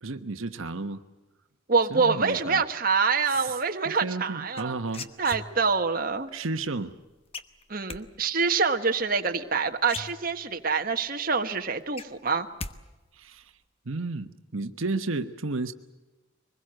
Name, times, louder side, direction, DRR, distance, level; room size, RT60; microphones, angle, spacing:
voice 1, 0.0-1.0 1.9-2.6 3.3-3.6 3.8-5.1 6.3-6.9 13.1-13.5 13.8-15.7, right 3 dB, 85° right, 8 dB, 1.1 m, -32 dB
voice 2, 1.7-4.8 5.2-6.3 7.7-12.5, right 5 dB, 45° right, 5 dB, 1.5 m, -26 dB
sound 1, 4.6-5.9 7.3-8.0 9.4-9.5 9.8-10.7 11.1-11.2 11.5-12.8 13.0-13.5, left 3 dB, 30° left, 1.0 m, -39 dB
24.0 x 21.0 x 7.7 m, 1.1 s
head